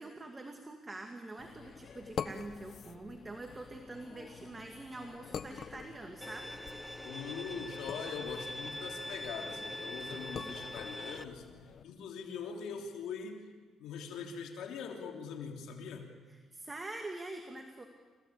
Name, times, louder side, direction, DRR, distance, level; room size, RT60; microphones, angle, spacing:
voice 1, 0.0-6.5 16.3-17.9, right 2 dB, 25° right, 4 dB, 2.4 m, -45 dB
sound 1, 1.4-11.8, left 7 dB, 55° left, 1.2 m, -46 dB
Bowed string instrument, 6.2-11.2, left 1 dB, 5° left, 0.8 m, -43 dB
voice 2, 7.0-11.4 11.8-13.4 13.8-16.1, left 6 dB, 85° left, 2 dB, 3.2 m, -42 dB
28.5 x 16.5 x 8.7 m, 1.5 s
cardioid pair, 90°, 0 cm